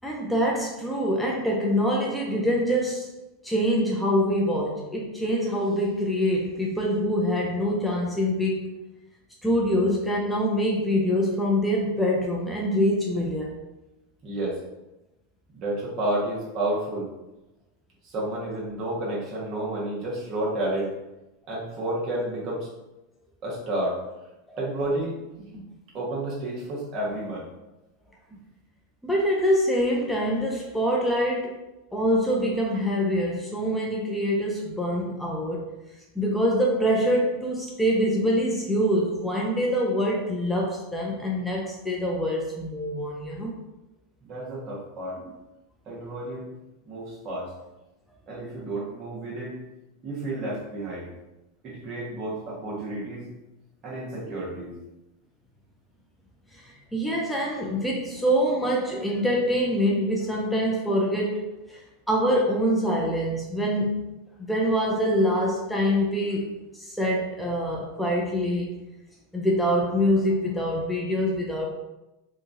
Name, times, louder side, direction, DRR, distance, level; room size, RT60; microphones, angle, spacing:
voice 1, 0.0-3.1 3.4-8.7 9.4-13.5 24.5-24.6 29.0-31.6 31.9-35.6 36.2-43.5 56.5-64.0 64.5-68.7 69.3-71.7, equal, 5° left, -3 dB, 0.5 m, -25 dB
voice 2, 14.2-14.6 15.5-17.1 18.0-20.9 21.5-22.7 23.4-24.0 24.6-25.6 25.9-27.4 28.3-28.4 44.2-45.2 45.9-46.5 46.8-47.5 48.3-49.6 50.0-51.1 51.6-53.3 53.8-54.7, right 1 dB, 45° right, -5 dB, 1.2 m, -31 dB
2.9 x 2.3 x 2.6 m, 0.97 s
hypercardioid pair, 95°, 0 cm